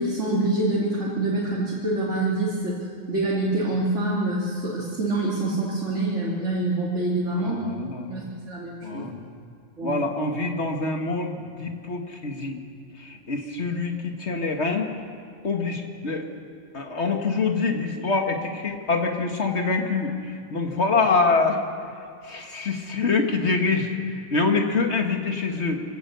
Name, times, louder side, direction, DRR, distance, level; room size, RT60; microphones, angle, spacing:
voice 1, 0.0-2.8 3.1-7.6 8.1-9.0 9.8-10.0, right 2 dB, 65° right, -5 dB, 3.2 m, -26 dB
voice 2, 7.4-8.2 8.8-9.3 9.8-12.6 13.0-14.9 15.4-16.3 16.7-21.6 22.2-23.9 24.3-25.8, left 4 dB, 55° left, 3 dB, 2.0 m, -25 dB
24.0 x 17.0 x 6.9 m, 2.4 s
omnidirectional pair, 1.3 m